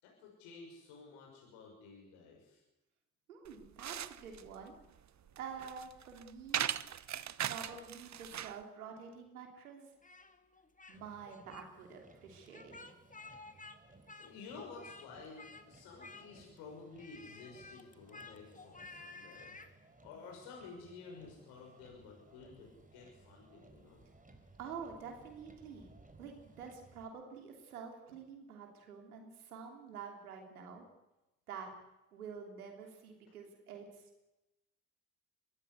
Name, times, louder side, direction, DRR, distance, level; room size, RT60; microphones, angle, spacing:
voice 1, 0.0-2.6 14.2-19.6 20.0-24.0, left 4 dB, 75° left, 0 dB, 6.3 m, -52 dB
voice 2, 3.3-4.7 5.3-6.7 7.5-9.9 10.9-12.9 24.6-30.8 31.5-31.7 32.1-34.3, right 6 dB, 90° right, 3 dB, 3.2 m, -48 dB
sound 1, 3.4-8.6, right 10 dB, 40° right, 1.0 m, -40 dB
Speech, 10.0-11.0 11.3-11.6 12.5-13.8 14.1-15.1 15.4-15.7 16.0-16.6 17.0-19.7, left 3 dB, 20° left, 2.4 m, -53 dB
Motor vehicle (road), 10.9-27.0, right 2 dB, 20° right, 4.1 m, -62 dB
22.5 x 15.5 x 9.7 m, 0.97 s
hypercardioid pair, 50°, 43 cm